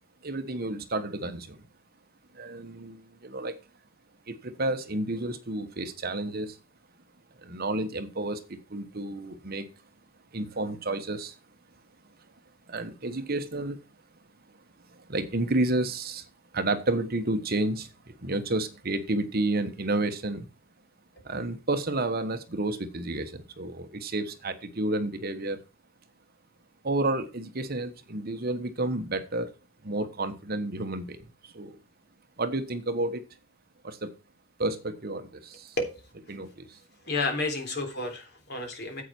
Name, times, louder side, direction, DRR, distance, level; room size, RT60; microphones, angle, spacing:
voice 1, 0.2-1.6 2.3-3.6 4.3-6.6 7.4-9.7 10.3-11.4 12.7-13.8 14.9-16.3 16.5-20.4 21.2-25.6 26.8-29.5 29.8-31.8 32.4-33.2 33.8-34.1 34.6-35.8 36.3-36.8, right 2 dB, 45° right, 9 dB, 1.2 m, -31 dB
voice 2, 37.1-39.0, left 2 dB, 50° left, 4 dB, 3.6 m, -30 dB
9.9 x 8.1 x 4.5 m, 0.30 s
head